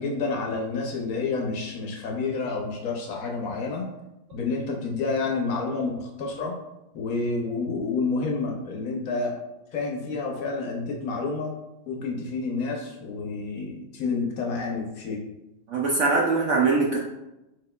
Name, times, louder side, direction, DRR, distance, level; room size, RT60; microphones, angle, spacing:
voice 1, 0.0-3.9 4.3-6.6 6.9-9.4 9.7-11.6 11.9-15.2, left 4 dB, 65° left, 0 dB, 1.0 m, -29 dB
voice 2, 15.7-17.0, right 3 dB, 75° right, -2 dB, 0.7 m, -22 dB
4.4 x 4.3 x 2.2 m, 0.95 s
omnidirectional pair, 1.8 m